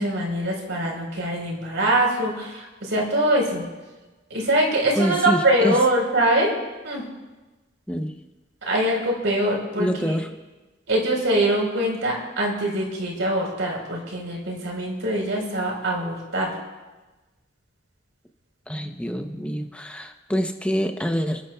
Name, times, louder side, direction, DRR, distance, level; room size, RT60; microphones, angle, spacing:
voice 1, 0.0-3.6 4.3-6.5 6.8-7.0 8.6-10.2 10.9-16.5, right 1 dB, 75° right, -1 dB, 4.1 m, -23 dB
voice 2, 5.0-5.8 7.9-8.2 9.8-10.3 18.7-21.4, equal, 5° left, 4 dB, 0.7 m, -26 dB
30.0 x 12.0 x 2.3 m, 1.2 s
head